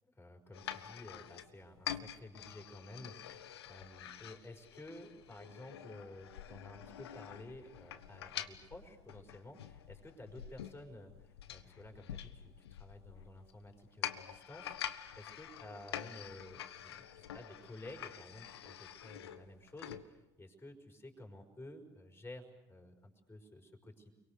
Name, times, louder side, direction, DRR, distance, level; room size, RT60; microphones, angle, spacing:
voice 1, 0.1-24.1, left 1 dB, 15° left, 2 dB, 5.1 m, -53 dB
sound 1, 0.5-20.0, left 10 dB, 80° left, 0.9 m, -47 dB
30.0 x 23.0 x 6.7 m, 1.0 s
hypercardioid pair, 60°, 13 cm